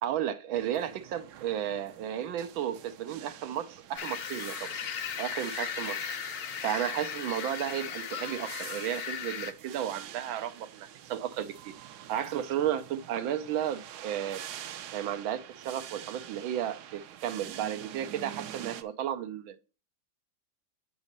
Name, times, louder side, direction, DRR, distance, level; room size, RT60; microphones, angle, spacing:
voice 1, 0.0-4.7 5.2-6.1 6.6-11.7 12.1-14.5 14.9-19.6, right 10 dB, 85° right, 1.5 m, -33 dB
sound 1, 0.5-18.8, right 10 dB, 70° right, 1.1 m, -47 dB
sound 2, 4.0-9.5, left 7 dB, 60° left, 1.2 m, -37 dB
8.2 x 4.0 x 6.5 m
omnidirectional pair, 2.1 m